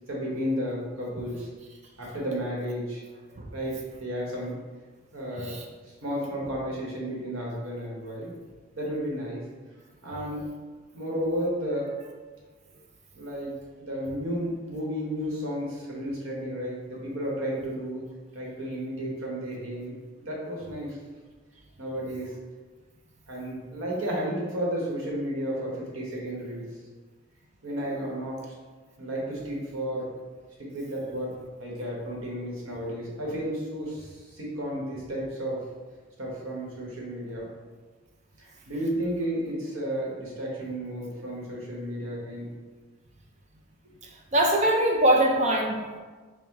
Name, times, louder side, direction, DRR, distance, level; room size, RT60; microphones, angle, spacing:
voice 1, 0.1-1.5 2.0-3.0 3.5-4.5 5.1-5.6 5.9-8.3 8.8-9.4 10.0-10.4 10.9-11.9 13.1-18.0 18.3-19.9 20.2-21.0 21.8-22.3 23.3-26.6 27.6-28.5 29.0-30.1 30.6-35.6 36.2-37.5 38.4-42.5 43.8-43.9, equal, 75° right, -3 dB, 1.0 m, -32 dB
voice 2, 44.3-46.0, right 1 dB, 35° right, 2 dB, 0.4 m, -22 dB
4.5 x 2.1 x 3.5 m, 1.4 s
head